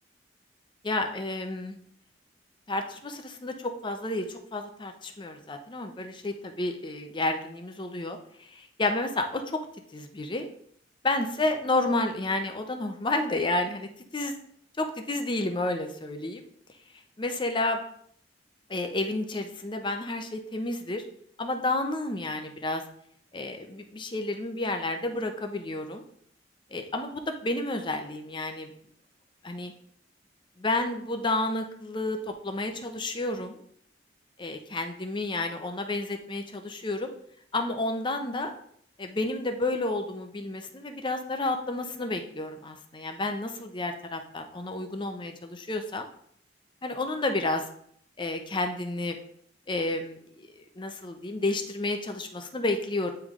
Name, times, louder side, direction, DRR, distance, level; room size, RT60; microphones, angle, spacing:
voice 1, 0.8-1.8 2.7-8.2 8.5-9.6 9.9-10.5 11.0-14.3 14.8-16.4 17.2-17.8 18.7-21.0 21.4-22.8 23.3-26.0 26.7-28.7 29.4-29.7 30.6-33.6 34.4-37.1 37.5-38.5 39.0-46.1 46.8-47.7 48.2-49.2 49.7-53.1, left 2 dB, 25° left, 6 dB, 0.6 m, -31 dB
9.1 x 3.3 x 3.6 m, 0.64 s
head